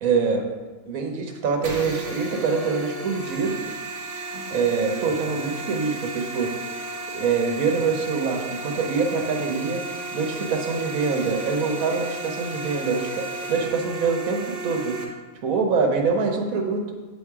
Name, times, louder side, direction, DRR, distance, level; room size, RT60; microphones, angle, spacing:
voice 1, 0.0-0.5 0.8-3.6 4.5-6.6 7.1-9.8 10.1-15.0 15.4-16.9, right 5 dB, 70° right, 3 dB, 1.4 m, -25 dB
sound 1, 1.6-15.0, right 2 dB, 55° right, 1.3 m, -34 dB
8.1 x 4.3 x 4.8 m, 1.3 s
omnidirectional pair, 1.5 m